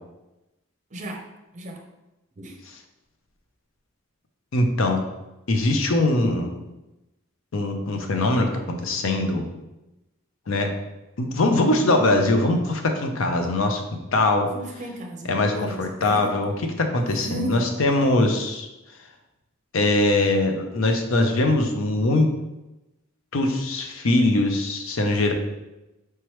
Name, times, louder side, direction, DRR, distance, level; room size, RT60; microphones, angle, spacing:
voice 1, 0.9-1.2 1.5-1.8 2.4-2.5 14.5-16.3 17.2-17.7, right 1 dB, 35° right, 2 dB, 0.6 m, -34 dB
voice 2, 4.5-5.0 5.5-6.6 7.5-9.4 10.5-10.7 11.2-13.8 14.1-14.5 15.3-16.5 16.8-18.7 19.7-22.3 23.3-25.3, left 2 dB, 80° left, 4 dB, 0.6 m, -22 dB
4.6 x 3.1 x 3.0 m, 0.98 s
head